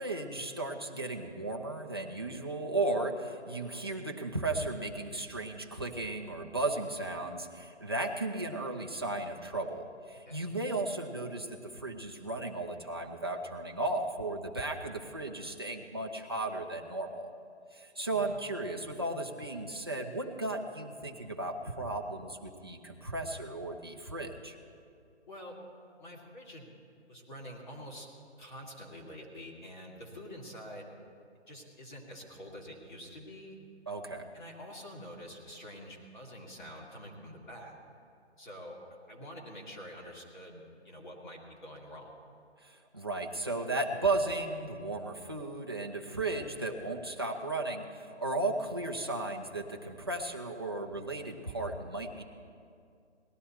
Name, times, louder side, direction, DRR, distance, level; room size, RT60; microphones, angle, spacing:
voice 1, 0.0-17.3 17.7-24.5 33.9-34.3 42.6-52.2, right 2 dB, 20° right, 1 dB, 0.5 m, -35 dB
voice 2, 18.1-18.4 25.3-25.6 26.0-26.7 27.1-28.1 28.4-30.9 31.5-33.6 34.3-37.8 38.4-38.8 39.1-42.1, equal, 40° left, -2 dB, 2.3 m, -47 dB
18.0 x 12.5 x 4.3 m, 2.3 s
hypercardioid pair, 170°, 35 cm